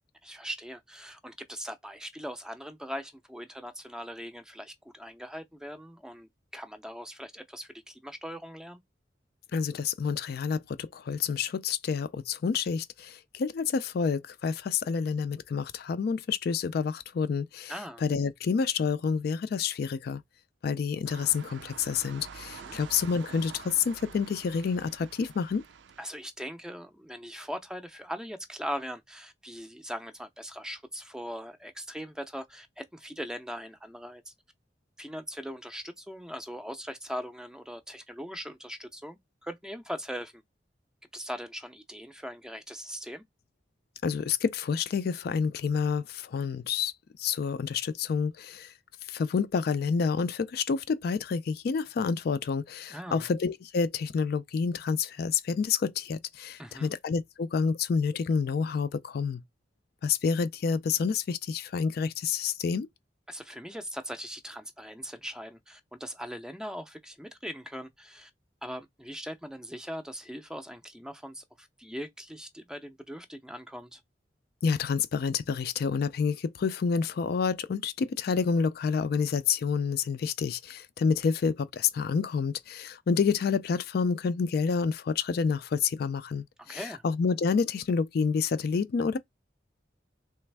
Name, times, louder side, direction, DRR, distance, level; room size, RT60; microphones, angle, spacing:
voice 1, 0.2-8.8 17.7-18.0 22.6-22.8 26.0-34.3 35.0-40.4 41.1-43.2 52.9-53.3 56.6-56.9 63.3-68.3 68.6-74.0 86.6-87.0, equal, 5° right, 0.5 m, -40 dB
voice 2, 9.5-17.7 18.0-20.2 20.6-25.6 44.0-46.9 47.2-48.7 49.1-59.4 60.0-62.9 74.6-89.2, left 5 dB, 60° left, 0.3 m, -28 dB
sound 1, 21.1-26.1, right 6 dB, 90° right, 0.4 m, -47 dB
3.3 x 3.1 x 3.3 m
head